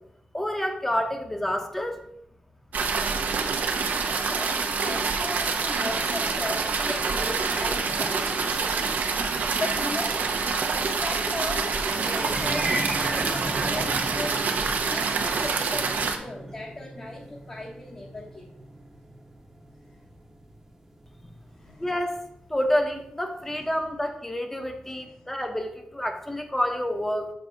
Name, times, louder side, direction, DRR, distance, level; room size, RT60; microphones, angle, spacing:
voice 1, 0.3-2.0 21.8-22.1 22.5-27.3, equal, 10° left, 5 dB, 0.9 m, -28 dB
sound 1, 2.7-16.2, right 5 dB, 85° right, 0.9 m, -26 dB
voice 2, 4.1-10.2 10.5-18.5 21.5-21.9 23.5-23.7 25.0-25.1, left 2 dB, 30° left, -2 dB, 1.1 m, -37 dB
sound 2, 12.2-22.4, right 1 dB, 15° right, 1.0 m, -36 dB
6.9 x 6.0 x 3.9 m, 0.75 s
wide cardioid pair, 145°, 3 cm